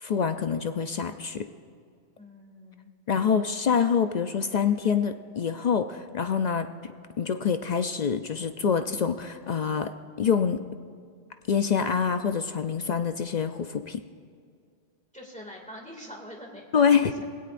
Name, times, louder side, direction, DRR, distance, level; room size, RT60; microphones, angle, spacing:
voice 1, 0.0-1.5 3.1-6.7 7.2-9.9 10.2-10.6 11.5-14.0 16.7-17.1, left 7 dB, 55° left, 8 dB, 0.5 m, -25 dB
voice 2, 2.2-2.9 15.1-17.2, equal, 5° left, -1 dB, 2.1 m, -44 dB
20.0 x 17.0 x 2.5 m, 2.2 s
omnidirectional pair, 1.2 m